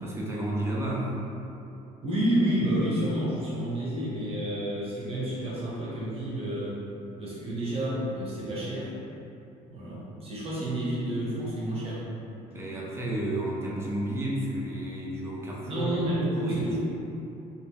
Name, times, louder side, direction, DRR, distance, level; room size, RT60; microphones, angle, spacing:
voice 1, 0.0-1.1 12.5-15.9 16.4-16.7, right 1 dB, 15° right, -4 dB, 0.5 m, -31 dB
voice 2, 2.0-6.8 7.2-8.9 9.7-12.0 15.6-16.8, right 1 dB, 35° right, -7 dB, 0.9 m, -29 dB
2.5 x 2.1 x 3.3 m, 2.7 s
cardioid pair, 115°, 16 cm